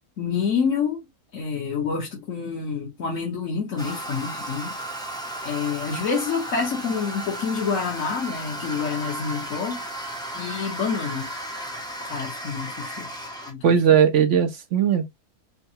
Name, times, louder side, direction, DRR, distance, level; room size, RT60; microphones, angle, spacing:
voice 1, 0.2-1.1 1.3-4.8 5.4-9.8 10.3-11.3 12.0-13.1 13.5-13.6, left 5 dB, 60° left, 1.5 m, -27 dB
Toilet flush, 3.8-13.5, right 1 dB, 5° left, 0.5 m, -34 dB
voice 2, 13.6-15.1, right 8 dB, 60° right, 0.9 m, -18 dB
5.4 x 2.3 x 2.8 m
omnidirectional pair, 1.6 m